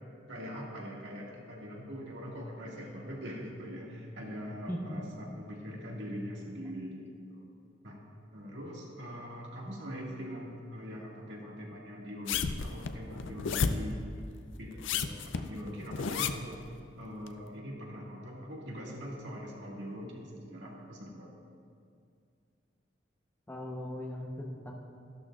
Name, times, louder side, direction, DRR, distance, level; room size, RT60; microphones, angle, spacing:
voice 1, 0.3-7.0 7.3-7.4 7.8-8.0 8.3-14.0 14.6-16.6 17.0-21.3, equal, 70° right, -3 dB, 2.0 m, -42 dB
voice 2, 4.7-5.0 23.5-24.7, left 1 dB, 10° left, -1 dB, 0.9 m, -38 dB
sound 1, 12.3-13.9 14.7-16.6 17.3-17.4, left 6 dB, 85° left, 0.5 m, -32 dB
13.5 x 12.0 x 2.5 m, 2.3 s
head